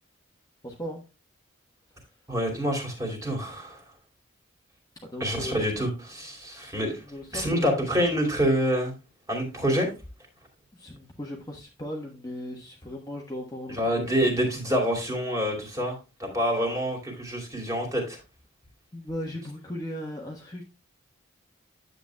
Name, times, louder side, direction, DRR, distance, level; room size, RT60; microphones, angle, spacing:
voice 1, 0.6-1.0 5.0-5.7 6.4-6.5 7.0-7.8 10.7-14.3 18.9-20.6, left 1 dB, 15° left, -1 dB, 1.2 m, -37 dB
voice 2, 2.3-3.8 5.2-7.0 7.3-8.9 9.3-9.9 13.7-18.2, equal, 15° right, 1 dB, 2.6 m, -27 dB
10.0 x 7.8 x 2.2 m, 0.28 s
head